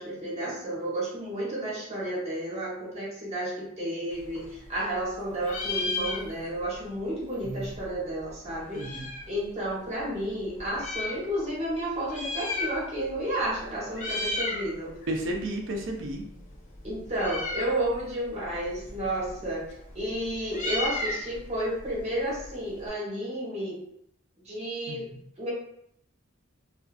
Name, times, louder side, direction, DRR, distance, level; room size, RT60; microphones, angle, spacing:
voice 1, 0.0-9.0 9.3-14.9 16.8-19.6 19.9-23.8 24.4-25.0 25.4-25.5, right 1 dB, 30° right, -6 dB, 1.0 m, -32 dB
Meow, 4.1-5.1 5.4-6.7 7.0-7.1 7.2-9.4 10.0-11.2 12.0-13.1 13.4-13.6 13.9-14.7 15.0-22.9, left 2 dB, 40° left, 0.6 m, -35 dB
voice 2, 8.7-9.1 15.1-16.2 24.9-25.2, right 1 dB, 65° right, 2 dB, 0.5 m, -33 dB
2.5 x 2.4 x 2.4 m, 0.72 s
head